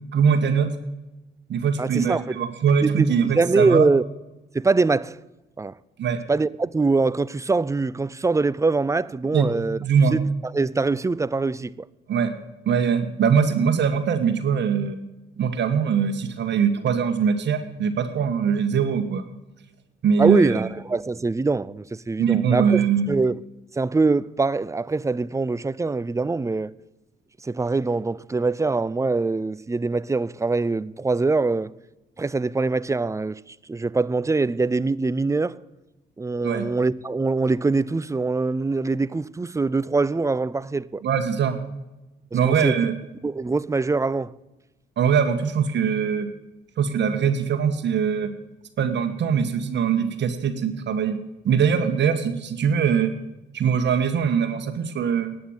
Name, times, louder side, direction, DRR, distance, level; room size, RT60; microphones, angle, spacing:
voice 1, 0.1-0.7 1.5-3.9 6.0-6.2 9.3-9.5 9.8-10.2 12.1-12.3 12.6-15.0 15.4-19.2 20.0-20.7 22.2-23.1 36.4-36.7 41.0-41.6 42.3-42.9 45.0-46.3 46.8-48.3 48.8-51.2 51.4-53.1 53.5-55.3, right 7 dB, 65° right, 1.6 m, -22 dB
voice 2, 1.8-2.4 2.8-4.0 4.5-5.2 5.6-5.7 6.3-9.8 10.1-10.2 10.5-11.9 20.2-22.8 23.1-23.4 23.8-26.7 27.4-31.7 32.2-35.6 36.2-41.0 42.3-42.8 43.2-44.3, right 3 dB, 15° right, 0.5 m, -23 dB
11.0 x 9.5 x 8.8 m
cardioid pair, 90°, 20 cm